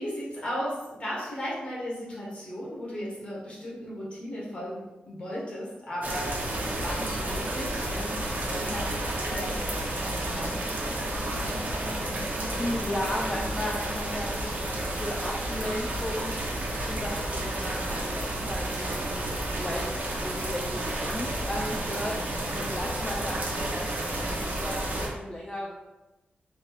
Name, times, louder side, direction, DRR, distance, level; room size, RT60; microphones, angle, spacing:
voice 1, 0.0-12.5, equal, 35° left, -6 dB, 1.5 m, -36 dB
sound 1, 6.0-25.1, right 1 dB, 60° right, 0.7 m, -31 dB
voice 2, 12.6-19.9 20.2-24.0 24.2-25.7, left 1 dB, 20° left, -2 dB, 0.4 m, -35 dB
3.9 x 3.6 x 2.4 m, 1.0 s
wide cardioid pair, 135°, 3 cm